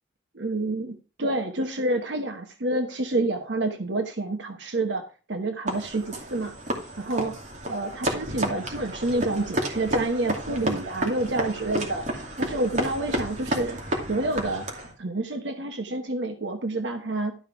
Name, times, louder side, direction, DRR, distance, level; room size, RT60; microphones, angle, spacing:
voice 1, 0.3-6.5 7.0-7.4 7.7-12.1 12.4-13.8 14.1-14.7 15.0-17.3, right 2 dB, 70° right, 6 dB, 1.1 m, -28 dB
sound 1, 5.7-14.9, right 1 dB, 40° right, 2.5 m, -31 dB
12.5 x 5.2 x 4.7 m, 0.35 s
head